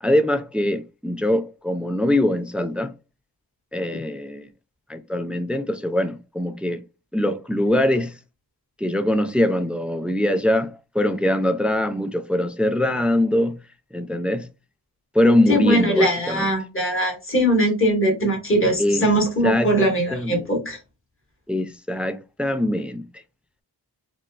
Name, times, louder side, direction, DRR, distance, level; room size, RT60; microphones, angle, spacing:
voice 1, 0.0-2.9 3.7-4.5 4.9-6.8 7.1-8.1 8.8-13.6 13.9-14.5 15.1-16.5 18.8-19.1 19.4-19.7 20.1-20.5 21.5-23.0, left 1 dB, 5° right, 0.3 m, -22 dB
voice 2, 15.5-20.8, equal, 35° left, 1.6 m, -21 dB
4.1 x 2.1 x 2.3 m
wide cardioid pair, 70°, 38 cm